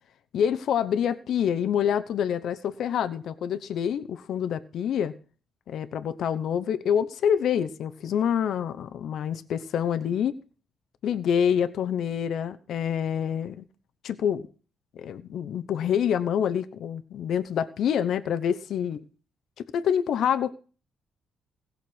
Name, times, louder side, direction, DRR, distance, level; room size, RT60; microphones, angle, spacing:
voice 1, 0.3-5.1 5.7-10.3 11.0-13.6 14.0-14.4 14.9-19.0 19.7-20.5, left 8 dB, 70° left, 12 dB, 0.9 m, -26 dB
16.5 x 6.7 x 6.2 m, 0.37 s
cardioid pair, 90°, 0 cm